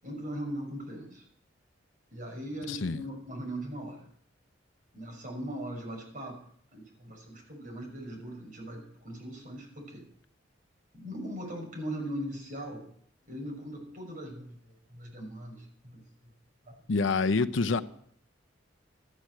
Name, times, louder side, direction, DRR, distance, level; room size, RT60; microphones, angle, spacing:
voice 1, 0.0-1.2 2.1-4.1 4.9-6.4 6.7-10.0 10.9-12.8 13.3-16.3 16.6-16.7 17.7-17.8, equal, 45° right, 6.0 m, -40 dB
voice 2, 2.7-3.0 16.9-17.8, left 4 dB, 80° left, 0.7 m, -27 dB
13.5 x 9.9 x 7.6 m
head